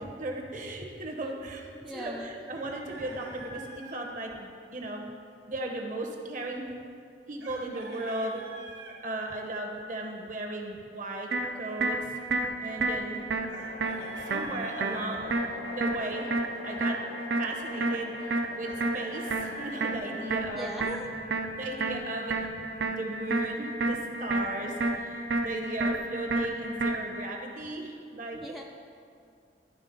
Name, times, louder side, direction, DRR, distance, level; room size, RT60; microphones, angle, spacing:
voice 1, 0.0-5.0 5.5-6.7 7.3-8.4 9.0-11.3 11.5-12.0 12.6-13.2 14.3-16.3 16.6-17.0 17.4-20.7 21.6-22.3 22.9-28.4, right 2 dB, 45° right, 1 dB, 0.9 m, -36 dB
voice 2, 1.8-2.3 20.5-21.2 28.3-28.6, equal, ahead, 0 dB, 0.3 m, -39 dB
Chicken rooster, 2.5-4.0 7.4-9.0 13.5-15.0 18.6-20.1, right 3 dB, 85° right, 1.1 m, -46 dB
sound 1, 11.3-27.3, right 2 dB, 70° right, 0.5 m, -31 dB
sound 2, 12.5-20.6, left 3 dB, 90° left, 0.5 m, -44 dB
11.0 x 3.7 x 5.2 m, 2.4 s
head